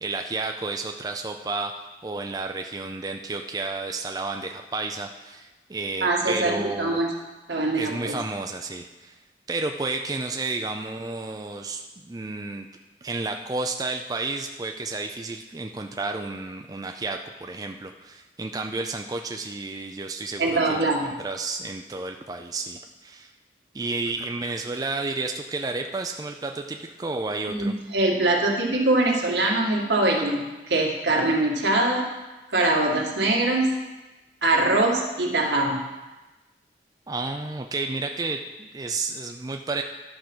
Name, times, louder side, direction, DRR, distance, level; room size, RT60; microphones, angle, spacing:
voice 1, 0.0-7.0 7.7-9.1 9.5-12.7 13.0-23.3 23.7-27.7 37.1-39.8, right 3 dB, 20° right, 4 dB, 0.4 m, -31 dB
voice 2, 6.0-7.1 7.5-8.2 20.4-21.1 27.5-32.1 32.5-33.7 34.4-35.8, right 2 dB, 80° right, -1 dB, 1.9 m, -23 dB
12.0 x 5.0 x 6.0 m, 1.1 s
head